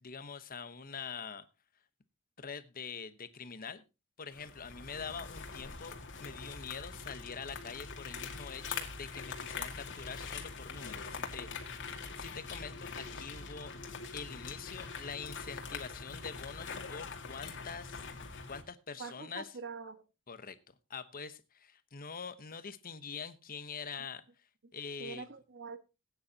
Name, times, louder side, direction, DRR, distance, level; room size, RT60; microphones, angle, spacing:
voice 1, 0.0-1.4 2.4-3.8 4.2-13.7 14.1-18.1 18.5-19.5 20.3-20.6 20.9-24.2 24.7-25.3, left 5 dB, 40° left, 12 dB, 1.0 m, -45 dB
sound 1, 4.3-18.6, left 5 dB, 55° left, 2.2 m, -43 dB
voice 2, 19.0-20.0 25.0-25.8, right 4 dB, 55° right, 10 dB, 1.4 m, -44 dB
19.0 x 9.5 x 2.8 m, 0.27 s
head